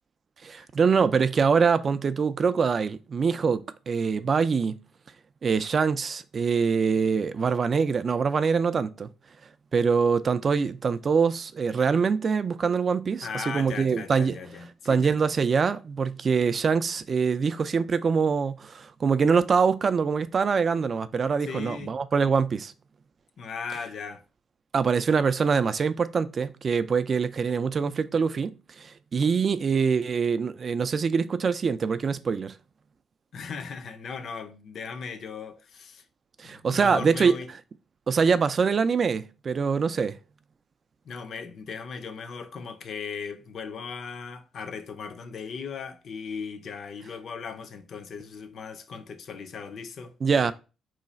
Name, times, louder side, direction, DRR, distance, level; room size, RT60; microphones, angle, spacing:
voice 1, 0.4-4.8 5.4-9.1 9.7-14.4 14.9-22.7 24.7-32.5 36.4-37.3 38.1-40.2 50.2-50.5, right 5 dB, 45° right, 0.3 m, -24 dB
voice 2, 13.2-15.3 21.4-22.0 23.4-24.2 33.3-36.0 36.4-37.5 41.0-50.5, left 5 dB, 60° left, 0.5 m, -38 dB
3.1 x 2.3 x 3.9 m
cardioid pair, 90°, 0 cm